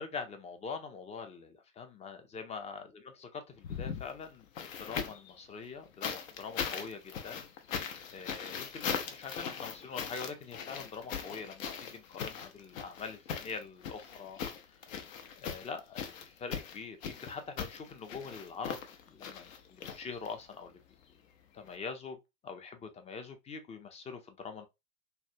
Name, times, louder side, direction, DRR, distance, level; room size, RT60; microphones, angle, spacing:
voice 1, 0.0-7.5 8.1-14.4 14.7-14.8 15.4-20.7 21.5-22.2 22.4-24.7, left 5 dB, 15° left, 0.5 m, -44 dB
sound 1, 3.6-5.3 6.0-20.5 21.7-21.8, left 7 dB, 65° left, 0.7 m, -40 dB
3.1 x 2.2 x 2.6 m
hypercardioid pair, 90°, 42 cm